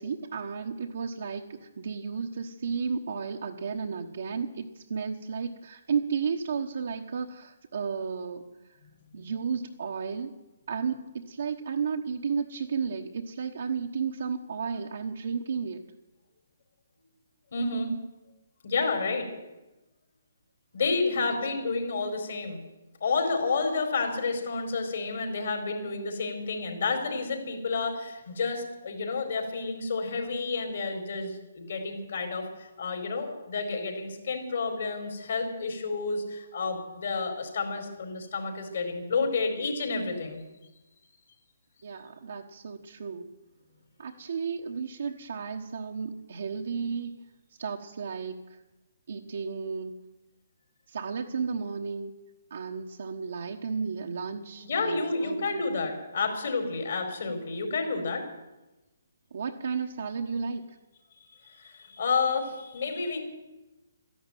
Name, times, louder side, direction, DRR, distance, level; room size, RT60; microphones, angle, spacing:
voice 1, 0.0-8.4 9.1-10.3 10.7-15.8 21.2-21.4 41.8-43.3 44.0-47.1 47.6-48.4 49.1-49.9 50.9-52.1 52.5-55.6 59.3-60.6, right 5 dB, 70° right, 1 dB, 1.3 m, -33 dB
voice 2, 17.5-17.9 18.6-19.3 20.7-22.6 23.0-40.4 54.6-58.2 61.3-63.2, left 4 dB, 65° left, 4 dB, 4.8 m, -30 dB
13.0 x 11.5 x 9.2 m, 1.0 s
hypercardioid pair, 145°, 0 cm